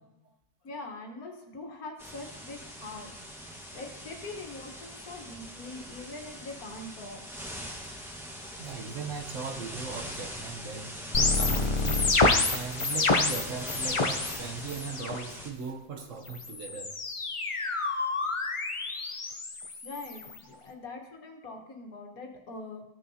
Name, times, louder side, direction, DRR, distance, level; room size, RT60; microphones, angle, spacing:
voice 1, 0.6-3.1 3.7-7.2 8.6-8.7 19.8-22.8, left 2 dB, 75° left, 3 dB, 1.8 m, -43 dB
sound 1, 2.0-15.5, equal, ahead, 1.1 m, -42 dB
voice 2, 8.6-11.0 11.3-12.1 12.4-16.9 20.5-20.8, right 5 dB, 60° right, 3 dB, 1.2 m, -39 dB
sound 2, 11.1-14.4 14.7-15.2 16.3-20.4, left 3 dB, 40° left, 0.4 m, -28 dB
15.5 x 6.6 x 2.8 m, 0.92 s
omnidirectional pair, 1.6 m